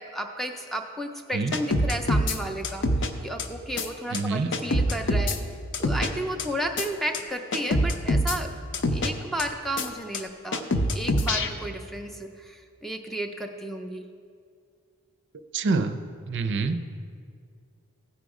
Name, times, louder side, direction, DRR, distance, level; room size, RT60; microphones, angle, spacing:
voice 1, 0.0-5.4 5.8-8.5 8.9-10.6 10.9-14.0, right 1 dB, ahead, 4 dB, 0.4 m, -33 dB
sound 1, 1.5-2.4 2.6-3.1 3.4-3.5 3.8-3.9 4.1-4.2 4.5-5.4 5.7-6.1 6.4-6.5 6.8-6.9 7.1-7.2 7.5-8.4 8.7-9.1 9.4-9.5 9.8-9.9 10.1-10.2 10.5-11.5, left 1 dB, 55° left, 0.6 m, -24 dB
voice 2, 4.1-4.5 15.5-16.0 16.3-16.8, right 4 dB, 55° right, 10 dB, 0.5 m, -26 dB
15.0 x 5.2 x 4.8 m, 2.2 s
head